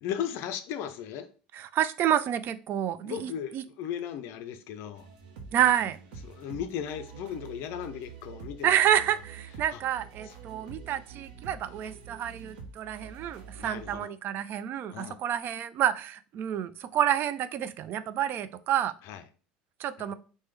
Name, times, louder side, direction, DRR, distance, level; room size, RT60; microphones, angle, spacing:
voice 1, 0.0-1.3 3.0-5.1 6.2-8.8 9.7-9.8 10.2-10.3 13.6-14.1 14.9-15.2 19.0-19.2 20.0-20.1, left 9 dB, 60° left, 0.4 m, -36 dB
voice 2, 1.5-3.6 5.5-6.0 8.6-18.9 19.8-20.1, right 10 dB, 50° right, 0.3 m, -29 dB
sound 1, 4.9-14.0, right 6 dB, 75° right, 0.7 m, -46 dB
3.0 x 2.2 x 3.3 m
hypercardioid pair, 80°, 5 cm